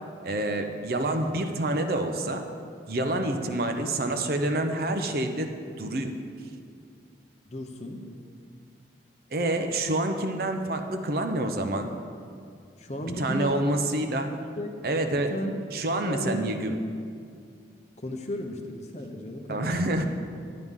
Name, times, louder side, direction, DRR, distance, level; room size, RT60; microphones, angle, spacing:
voice 1, 0.2-2.4 2.9-6.2 9.3-11.9 13.0-14.3 14.8-15.4 15.7-16.8 19.5-20.1, right 1 dB, 55° right, 5 dB, 0.7 m, -27 dB
voice 2, 7.5-8.0 12.8-13.7 14.2-14.8 15.2-15.6 16.1-16.4 18.0-20.1, left 1 dB, 35° left, 4 dB, 0.8 m, -35 dB
11.0 x 9.6 x 3.7 m, 2.3 s
head